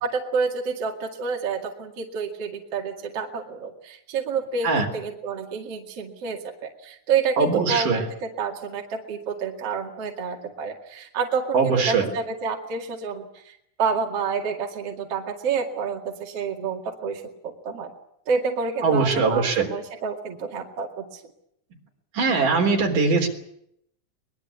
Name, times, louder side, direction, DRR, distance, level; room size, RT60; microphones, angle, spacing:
voice 1, 0.0-17.9 18.3-21.2, right 5 dB, 50° right, 2 dB, 3.1 m, -29 dB
voice 2, 7.4-8.0 11.5-12.1 18.8-19.7 22.1-23.3, right 4 dB, 85° right, 3 dB, 5.2 m, -21 dB
22.5 x 21.0 x 8.5 m, 0.73 s
omnidirectional pair, 3.6 m